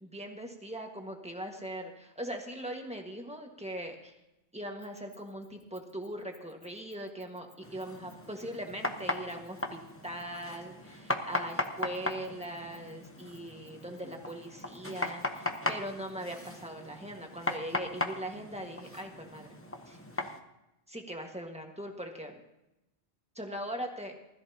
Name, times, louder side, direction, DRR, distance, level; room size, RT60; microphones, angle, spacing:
voice 1, 0.0-4.1 4.5-19.5 19.9-20.0 20.9-22.3 23.3-24.1, right 1 dB, 5° right, 2 dB, 1.5 m, -40 dB
Keys jangling, 4.8-10.5 11.3-16.1, left 1 dB, 35° left, 3.6 m, -64 dB
sound 1, 7.6-20.4, left 2 dB, 15° left, 0.8 m, -38 dB
19.5 x 13.5 x 2.9 m, 0.92 s
omnidirectional pair, 1.2 m